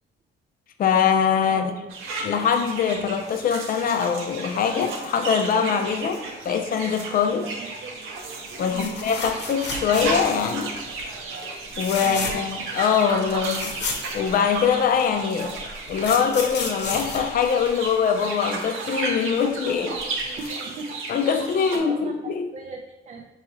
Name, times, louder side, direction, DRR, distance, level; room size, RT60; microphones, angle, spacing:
voice 1, 0.8-1.7 2.2-7.5 8.6-10.8 11.8-13.8 14.1-15.6 15.9-20.0 21.1-22.5, left 7 dB, 45° left, 6 dB, 0.4 m, -23 dB
voice 2, 1.5-1.9 6.2-6.3 7.4-7.7 8.7-9.0 12.0-12.5 20.4-21.0 21.7-23.3, right 4 dB, 35° right, 2 dB, 0.4 m, -38 dB
sound 1, 1.9-21.8, right 3 dB, 85° right, 0.7 m, -34 dB
sound 2, 8.8-10.4 10.7-11.1 11.7-12.6 12.9-13.0 13.3-14.8 15.5-18.1 20.0-20.1 20.4-20.5, left 4 dB, 60° left, 0.8 m, -32 dB
4.6 x 2.8 x 2.7 m, 1.0 s
cardioid pair, 90°, 20 cm